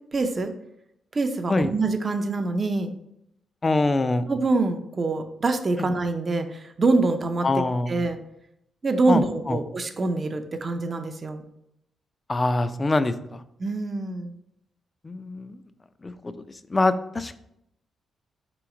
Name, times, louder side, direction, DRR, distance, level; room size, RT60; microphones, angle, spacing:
voice 1, 0.1-0.5 1.1-2.9 4.3-8.2 8.8-11.4 13.6-14.3, right 3 dB, 40° right, 7 dB, 0.5 m, -25 dB
voice 2, 3.6-4.3 7.4-7.9 9.1-9.6 12.3-13.4 15.0-15.6 16.0-16.1 16.7-17.4, left 2 dB, 30° left, 12 dB, 0.4 m, -24 dB
3.4 x 3.0 x 4.7 m, 0.78 s
cardioid pair, 70°, 0 cm